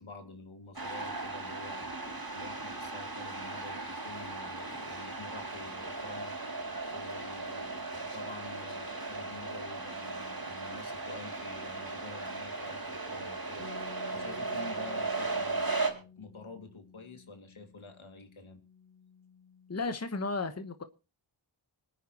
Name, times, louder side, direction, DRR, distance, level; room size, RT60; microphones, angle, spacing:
voice 1, 0.0-18.6, left 3 dB, 70° left, 2.3 m, -49 dB
sound 1, 0.8-15.9, right 3 dB, 45° right, 3.7 m, -37 dB
Bass guitar, 13.6-19.8, left 5 dB, 10° left, 2.7 m, -54 dB
voice 2, 19.7-20.8, left 3 dB, 30° left, 1.1 m, -34 dB
26.0 x 9.5 x 2.9 m
wide cardioid pair, 55°, 49 cm